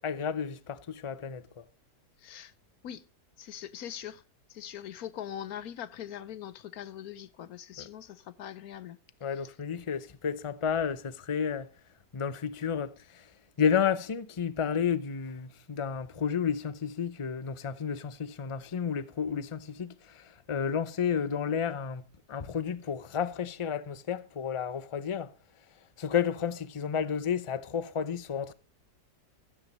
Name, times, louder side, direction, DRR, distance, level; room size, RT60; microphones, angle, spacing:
voice 1, 0.0-1.6 7.8-7.9 9.2-11.7 12.1-13.2 13.6-25.3 26.0-28.5, left 7 dB, 40° left, 0.4 m, -31 dB
voice 2, 2.2-2.5 2.8-3.0 3.4-4.2 4.5-9.0, left 10 dB, 65° left, 1.2 m, -42 dB
15.5 x 13.5 x 3.1 m
omnidirectional pair, 1.8 m